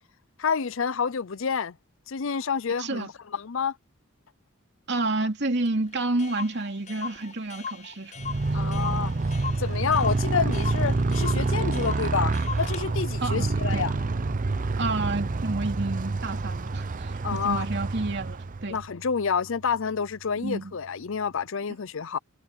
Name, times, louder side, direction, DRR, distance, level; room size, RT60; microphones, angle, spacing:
voice 1, 0.4-1.8 2.1-3.8 8.5-9.1 9.6-13.9 17.2-17.7 18.7-22.2, left 6 dB, 60° left, 0.6 m, -28 dB
voice 2, 4.9-8.1 8.5-8.6 13.2-13.9 14.8-18.8 20.4-20.7, right 2 dB, 55° right, 2.7 m, -30 dB
Clock, 5.6-5.7 5.9-6.0 6.2-12.8, left 6 dB, 35° left, 7.6 m, -39 dB
Motorcycle, 8.2-18.8, right 3 dB, 40° right, 0.6 m, -28 dB
Piano, 13.3-21.4, right 4 dB, 70° right, 0.8 m, -37 dB
head